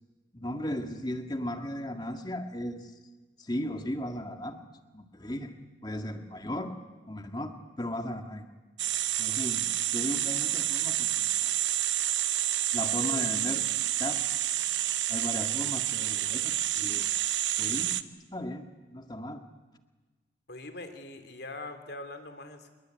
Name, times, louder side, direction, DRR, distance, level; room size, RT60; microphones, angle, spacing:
voice 1, 0.3-2.9 3.4-4.6 4.9-5.6 5.8-6.8 7.1-8.5 9.2-9.7 9.9-11.5 12.7-13.7 14.0-14.3 15.1-17.1 17.6-18.0 18.3-19.4, left 1 dB, 20° left, 6 dB, 1.9 m, -36 dB
sound 1, 8.8-18.0, right 13 dB, 75° right, 0.9 m, -29 dB
voice 2, 20.5-22.7, left 2 dB, 60° left, 7 dB, 3.0 m, -42 dB
27.5 x 21.5 x 9.4 m, 1.2 s
head